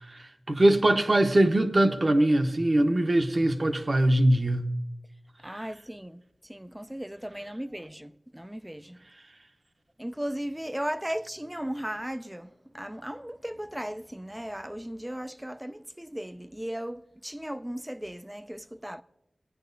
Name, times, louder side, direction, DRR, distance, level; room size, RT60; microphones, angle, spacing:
voice 1, 0.1-4.7, right 1 dB, 50° right, 0.9 m, -22 dB
voice 2, 5.4-6.2 6.5-9.0 10.0-19.0, equal, 10° right, 0.4 m, -36 dB
19.0 x 9.8 x 2.6 m
wide cardioid pair, 70°, 0 cm